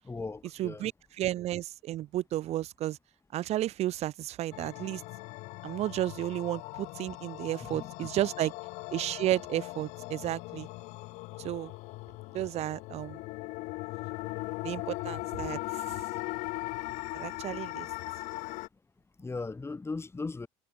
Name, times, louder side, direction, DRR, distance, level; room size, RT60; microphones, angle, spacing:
voice 1, 0.0-0.9 7.6-8.1 11.6-11.7 19.2-20.5, left 3 dB, 20° left, 4.4 m, -38 dB
voice 2, 0.6-0.9 1.2-3.0 3.3-5.0 5.6-8.5 8.9-10.7 11.4-11.7 12.3-13.2 14.6-15.8 17.1-17.9, right 14 dB, 55° right, 0.8 m, -32 dB
sound 1, 4.5-18.7, left 23 dB, 70° left, 1.0 m, -39 dB
supercardioid pair, 75°, 13 cm